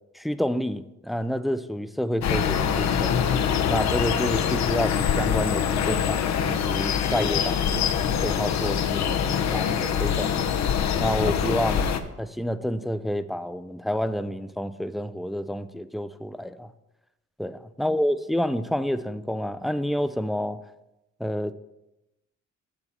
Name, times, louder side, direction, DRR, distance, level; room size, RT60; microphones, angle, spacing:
voice 1, 0.1-3.2 3.7-7.9 8.2-10.4 11.0-16.7 17.4-20.6 21.2-21.5, equal, ahead, 12 dB, 0.3 m, -29 dB
sound 1, 2.2-12.0, left 8 dB, 65° left, 0.7 m, -24 dB
7.1 x 6.8 x 4.2 m, 0.93 s
cardioid pair, 90°, 30 cm